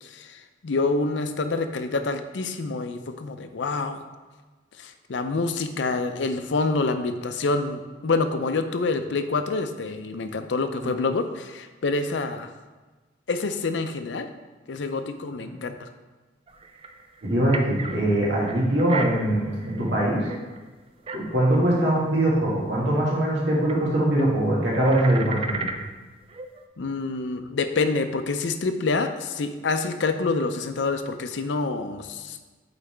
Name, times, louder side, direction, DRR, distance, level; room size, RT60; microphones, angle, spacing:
voice 1, 0.0-4.0 4.8-12.5 13.3-14.3 14.7-15.9 26.8-32.4, left 3 dB, 85° left, 8 dB, 0.5 m, -27 dB
sound 1, 16.5-18.0 18.4-20.7 21.0-21.6 21.9-22.0 22.3-22.4 23.7-23.9 24.2-25.8 26.3-26.6, right 3 dB, 30° right, 0.4 m, -36 dB
voice 2, 17.2-20.3 21.1-25.7, right 1 dB, 75° right, -5 dB, 2.0 m, -22 dB
8.5 x 4.0 x 3.4 m, 1.3 s
head